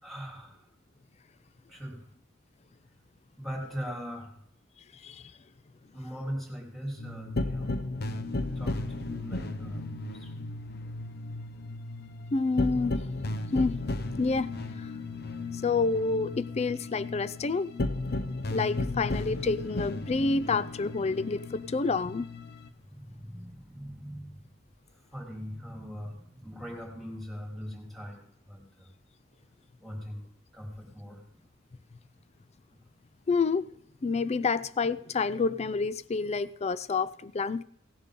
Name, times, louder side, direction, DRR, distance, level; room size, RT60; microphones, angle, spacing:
voice 1, 0.0-0.6 1.7-2.1 3.4-4.4 5.9-7.8 8.6-10.4 22.9-24.4 25.1-28.9 29.8-30.2 30.5-31.2, equal, ahead, 3.5 m, -40 dB
sound 1, 7.0-22.7, left 2 dB, 55° left, 0.9 m, -35 dB
voice 2, 12.3-13.0 13.5-13.8 14.2-14.5 15.6-17.7 18.5-22.3 33.3-33.7 34.0-37.6, left 4 dB, 35° left, 0.4 m, -28 dB
17.5 x 10.5 x 3.7 m
head